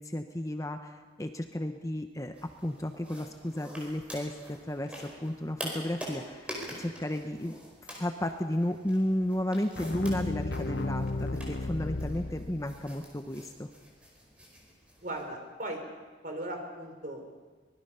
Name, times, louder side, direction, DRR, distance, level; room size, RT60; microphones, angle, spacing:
voice 1, 0.0-7.6 8.0-13.7, left 1 dB, 15° left, 6 dB, 0.9 m, -33 dB
sound 1, 2.3-15.2, equal, 5° right, 4.7 m, -46 dB
sound 2, 9.7-12.9, left 2 dB, 70° left, 1.1 m, -34 dB
voice 2, 15.0-15.8 16.2-17.2, right 1 dB, 45° right, 3 dB, 4.1 m, -37 dB
24.5 x 20.0 x 5.7 m, 1.3 s
head